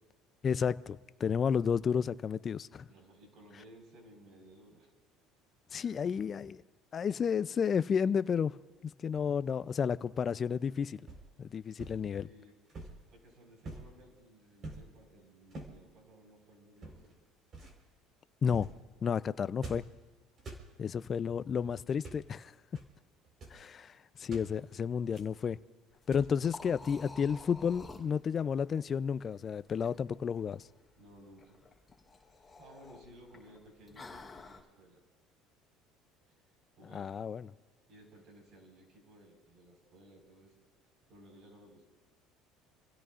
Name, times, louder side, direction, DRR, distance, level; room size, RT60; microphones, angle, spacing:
voice 1, 0.4-2.9 5.7-6.6 6.9-8.6 9.0-11.1 11.4-12.3 18.4-18.7 19.0-19.8 20.8-22.5 23.5-23.9 24.2-25.6 26.1-30.6 36.9-37.5, left 7 dB, 35° left, 0.5 m, -31 dB
voice 2, 2.9-4.9 5.7-6.4 12.0-12.6 13.1-17.1 21.1-21.3 30.9-31.6 32.4-35.0 36.8-37.2 37.9-40.5 41.1-41.8, right 1 dB, 55° right, 4.9 m, -57 dB
sound 1, 9.1-9.5 11.1-11.3 11.8-12.0 12.7-13.1 13.6-14.0 14.6-14.9 15.5-15.8 16.8-17.1 17.5-17.8 18.5-18.8 19.6-20.0 20.4-20.7 21.9-22.3 22.8-22.9 23.2-23.6 24.3-24.5 25.1-25.4 26.1-26.4, right 2 dB, 40° right, 4.3 m, -46 dB
Liquid, 25.9-34.6, left 3 dB, 10° left, 3.8 m, -52 dB
28.5 x 16.5 x 2.5 m
cardioid pair, 115°, 0 cm